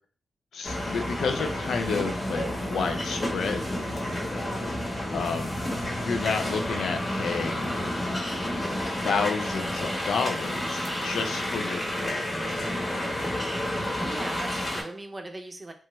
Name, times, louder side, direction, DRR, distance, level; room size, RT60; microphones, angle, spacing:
voice 1, 0.5-3.7 5.1-5.6 6.0-7.7 9.0-12.7, left 5 dB, 85° left, 6 dB, 0.4 m, -30 dB
sound 1, 0.6-14.8, left 1 dB, 40° left, 1.0 m, -30 dB
voice 2, 4.2-4.7 14.0-15.7, right 2 dB, 30° right, 5 dB, 0.6 m, -40 dB
2.9 x 2.2 x 3.0 m, 0.42 s
cardioid pair, 70°, 0 cm